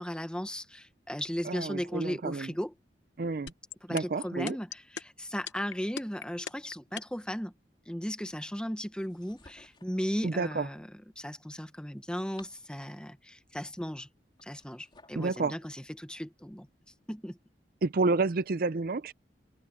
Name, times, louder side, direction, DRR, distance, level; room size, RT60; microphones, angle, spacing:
voice 1, 0.0-2.7 3.8-7.5 7.9-10.9 11.2-14.1 14.4-16.7 17.1-17.4, equal, 5° left, 1.1 m, -36 dB
voice 2, 1.4-2.5 3.2-3.5 3.9-4.6 10.2-10.7 15.2-15.6 17.8-19.1, right 3 dB, 55° right, 0.5 m, -29 dB
sound 1, 3.5-7.2, left 8 dB, 90° left, 1.0 m, -38 dB
sound 2, 9.0-10.0 12.0-13.1 14.4-15.3, left 3 dB, 25° left, 3.6 m, -58 dB
head